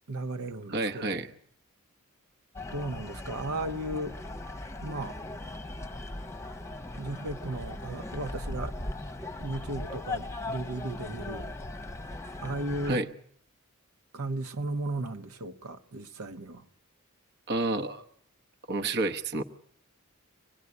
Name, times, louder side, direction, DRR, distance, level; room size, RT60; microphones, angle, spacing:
voice 1, 0.1-1.2 2.7-4.2 4.8-5.2 7.0-8.8 9.4-11.5 12.4-13.0 14.1-16.6, right 2 dB, 80° right, 1.2 m, -35 dB
voice 2, 0.7-1.3 12.8-13.1 17.5-18.0 18.7-19.4, right 2 dB, 50° right, 1.1 m, -29 dB
sound 1, 2.5-13.0, left 2 dB, 15° left, 1.0 m, -39 dB
25.5 x 19.5 x 9.6 m
head